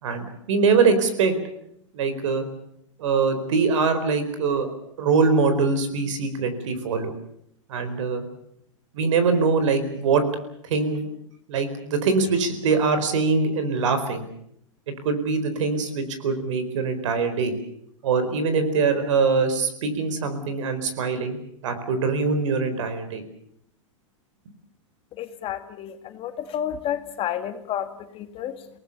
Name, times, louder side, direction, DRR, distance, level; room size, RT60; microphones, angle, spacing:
voice 1, 0.0-1.3 1.9-2.5 3.0-4.7 5.0-7.1 7.7-8.3 8.9-10.2 10.6-11.1 11.5-14.3 15.0-17.5 18.0-21.4 21.6-23.2, right 4 dB, 70° right, 10 dB, 4.5 m, -23 dB
voice 2, 25.2-28.7, left 10 dB, 35° left, 8 dB, 1.9 m, -31 dB
28.5 x 19.0 x 6.8 m, 0.73 s
hypercardioid pair, 120°, 16 cm